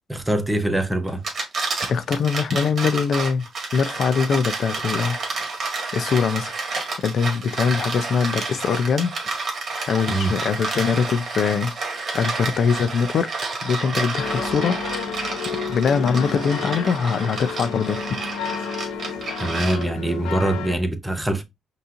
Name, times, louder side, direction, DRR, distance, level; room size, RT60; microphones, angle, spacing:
voice 1, 0.1-1.2 10.1-10.3 19.4-21.4, right 1 dB, 10° right, 0.8 m, -23 dB
sound 1, 1.1-20.1, right 3 dB, 50° right, 1.8 m, -30 dB
voice 2, 1.9-5.2 5.9-6.5 7.0-9.1 9.9-11.7 12.1-13.3 13.6-14.8 15.7-18.0, left 6 dB, 60° left, 0.5 m, -22 dB
sound 2, 14.2-20.7, left 6 dB, 90° left, 0.8 m, -31 dB
5.4 x 3.0 x 2.5 m
cardioid pair, 90°, 0 cm